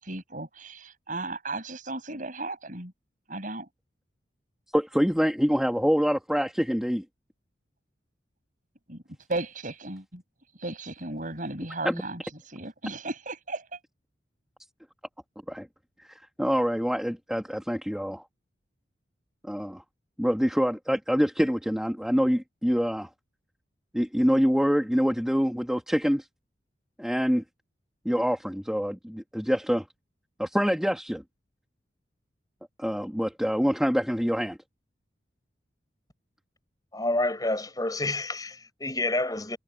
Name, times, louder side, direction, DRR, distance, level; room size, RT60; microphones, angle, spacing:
voice 1, 0.0-2.9 3.3-3.7 8.9-9.0 9.3-10.2 10.6-12.2 12.5-13.7, right 2 dB, 45° right, 7.1 m, -35 dB
voice 2, 4.7-7.0 11.8-12.0 15.5-15.7 16.4-18.2 19.4-19.8 20.2-23.1 23.9-26.3 27.0-27.4 28.1-29.8 30.4-31.2 32.8-34.6, equal, 5° right, 2.2 m, -25 dB
voice 3, 36.9-39.6, left 2 dB, 20° left, 6.2 m, -28 dB
head